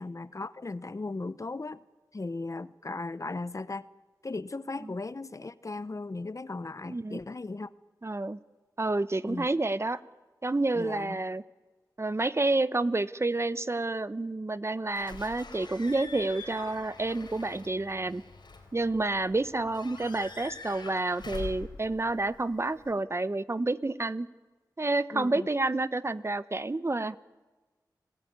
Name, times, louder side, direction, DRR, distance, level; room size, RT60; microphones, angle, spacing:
voice 1, 0.0-1.8 2.1-3.9 4.2-7.7 9.2-9.5 10.7-11.2 25.1-25.5, left 3 dB, 45° left, 16 dB, 0.8 m, -37 dB
voice 2, 6.9-7.2 8.0-8.4 8.8-10.0 10.4-11.4 12.0-18.2 18.7-24.3 24.8-27.2, right 2 dB, 35° right, 15 dB, 0.8 m, -29 dB
Slam / Squeak / Alarm, 14.9-22.9, left 4 dB, 80° left, 4.1 m, -45 dB
30.0 x 17.5 x 9.4 m, 1.2 s
cardioid pair, 45°, 8 cm